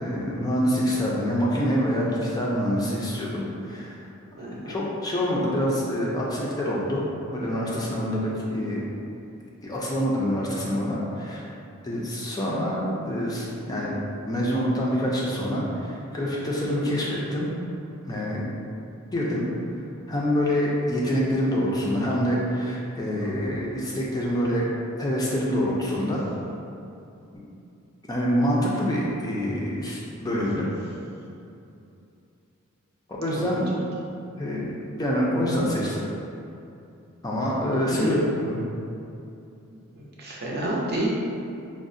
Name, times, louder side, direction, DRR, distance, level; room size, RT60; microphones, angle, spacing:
voice 1, 0.0-4.0 4.5-8.8 9.6-11.5 11.8-14.0 14.2-17.5 18.0-18.5 19.1-19.5 20.1-24.7 25.0-26.2 28.1-30.7 33.1-33.7 34.4-34.7 35.0-36.0 37.2-38.2 38.4-38.6, equal, 20° left, -5 dB, 0.3 m, -26 dB
voice 2, 4.4-4.8 23.2-23.3 33.3-33.8 37.9-38.2 39.9-41.1, right 1 dB, 50° right, -5 dB, 0.6 m, -30 dB
4.6 x 2.0 x 2.5 m, 2.7 s
head